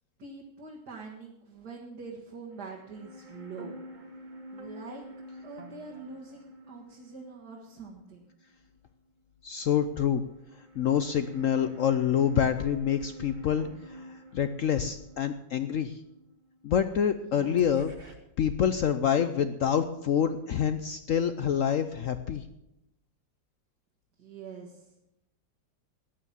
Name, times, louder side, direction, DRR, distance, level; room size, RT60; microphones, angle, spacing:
voice 1, 0.2-3.7 4.5-5.0 5.4-8.3 17.2-17.6 24.2-24.9, right 4 dB, 60° right, -2 dB, 2.3 m, -44 dB
sound 1, 2.5-8.8 9.1-9.2 10.2-17.2 17.6-18.1, equal, 25° right, 1.8 m, -48 dB
voice 2, 9.4-10.2 10.8-16.0 16.6-17.9 18.4-22.4, left 8 dB, 70° left, 10 dB, 0.7 m, -27 dB
13.5 x 9.6 x 7.4 m, 0.85 s
omnidirectional pair, 2.0 m